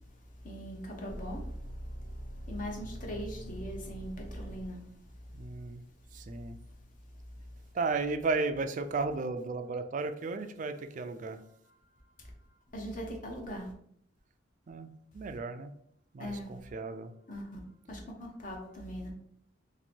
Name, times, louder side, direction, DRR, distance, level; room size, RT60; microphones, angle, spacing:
voice 1, 0.4-1.5 2.1-4.8 12.2-12.3 12.7-13.7 16.2-16.6 17.3-17.6 17.9-19.1, equal, 45° left, 1 dB, 0.8 m, -40 dB
sound 1, 1.1-5.1 10.7-12.1 12.4-12.6 18.6-18.7, equal, 90° left, 1.3 m, -44 dB
voice 2, 5.3-5.8 6.1-6.6 7.7-11.4 14.7-14.9 15.1-15.7 16.1-17.1, right 3 dB, 40° right, 8 dB, 0.3 m, -34 dB
2.9 x 2.6 x 4.3 m, 0.68 s
head